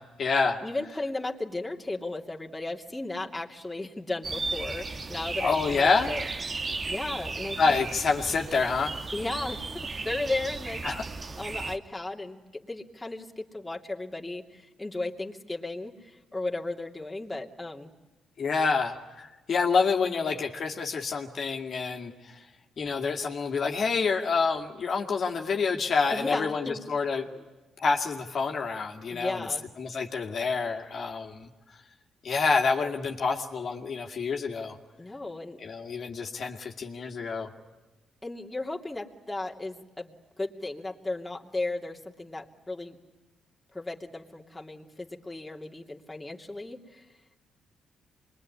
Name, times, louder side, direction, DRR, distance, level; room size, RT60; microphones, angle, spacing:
voice 1, 0.0-0.6 5.4-6.1 7.6-9.0 10.8-11.0 18.4-22.5 22.8-27.3 27.8-29.5 29.8-31.5 32.2-34.8 35.6-37.5, left 4 dB, 50° left, 2 dB, 2.2 m, -27 dB
voice 2, 0.6-6.2 6.5-6.6 6.8-7.8 9.1-9.6 10.0-10.8 11.4-17.9 20.1-20.2 26.1-26.8 29.1-29.6 35.0-35.6 38.2-43.0 43.7-47.1, left 2 dB, 10° left, -1 dB, 2.9 m, -35 dB
sound 1, 4.2-11.8, right 3 dB, 30° right, 1.4 m, -35 dB
25.5 x 22.0 x 9.8 m, 1.2 s
cardioid pair, 90°, 0 cm